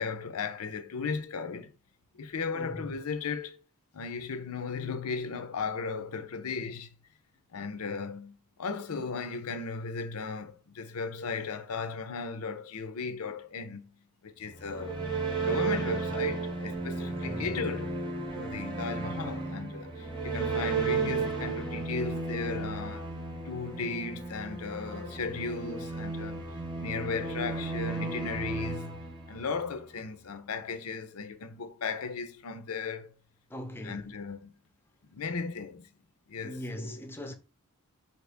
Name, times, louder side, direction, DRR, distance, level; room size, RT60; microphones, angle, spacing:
voice 1, 0.0-1.7 2.1-3.6 3.9-6.9 7.5-13.9 14.2-18.0 18.3-23.1 23.4-26.4 26.8-33.1 33.8-34.5 35.1-35.9 36.3-37.0, left 5 dB, 85° left, 0.6 m, -36 dB
sound 1, 14.5-29.7, right 4 dB, 20° right, 0.7 m, -34 dB
voice 2, 17.0-17.5 33.5-34.1 36.4-37.3, equal, 10° left, 0.4 m, -40 dB
4.2 x 2.8 x 3.4 m
head